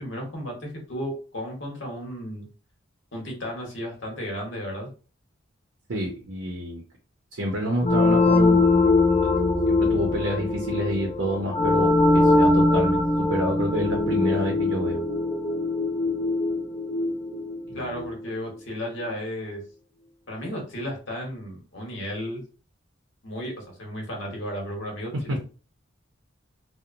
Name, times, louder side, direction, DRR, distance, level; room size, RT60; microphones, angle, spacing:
voice 1, 0.0-2.5 3.1-4.9 17.7-19.6 20.3-22.4 23.2-25.4, equal, 65° left, 1 dB, 1.0 m, -34 dB
voice 2, 5.9-6.8 7.3-8.6 9.7-15.0 17.7-18.1 25.1-25.4, equal, 80° right, 1 dB, 0.6 m, -28 dB
sound 1, 7.8-18.3, left 2 dB, 30° left, 0.5 m, -22 dB
2.8 x 2.0 x 2.5 m, 0.36 s
head